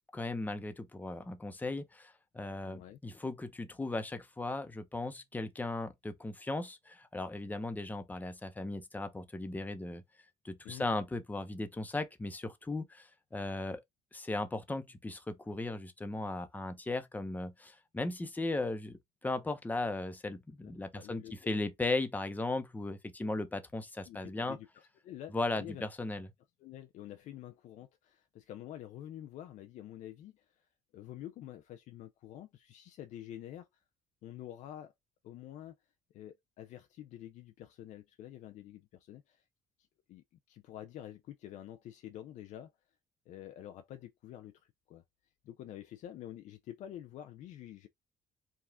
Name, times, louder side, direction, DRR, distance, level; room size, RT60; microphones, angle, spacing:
voice 1, 0.1-10.0 10.4-13.8 14.1-24.6 25.3-26.3, left 2 dB, 15° left, 0.8 m, -37 dB
voice 2, 2.6-3.0 10.6-10.9 20.6-21.3 24.1-25.9 26.6-30.4 30.9-33.7 34.2-34.9 35.2-35.7 36.1-39.4 40.1-42.7 43.3-44.6 44.9-45.0 45.4-47.9, left 12 dB, 70° left, 0.4 m, -48 dB
4.7 x 2.4 x 3.4 m
cardioid pair, 100°, 13 cm